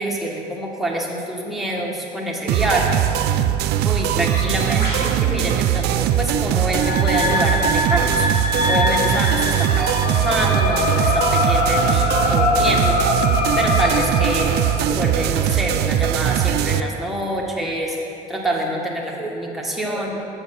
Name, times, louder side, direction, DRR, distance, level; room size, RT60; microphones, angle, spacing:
voice 1, 0.0-3.1 3.8-8.3 8.7-13.0 13.2-18.0 18.3-20.2, right 1 dB, ahead, -3 dB, 1.3 m, -26 dB
sound 1, 2.5-16.8, right 11 dB, 75° right, 0.4 m, -20 dB
Bird, 4.0-10.4, equal, 70° left, 2.1 m, -39 dB
sound 2, 6.7-14.8, left 3 dB, 55° left, 1.0 m, -22 dB
7.8 x 6.9 x 4.7 m, 2.8 s
cardioid pair, 110°, 17 cm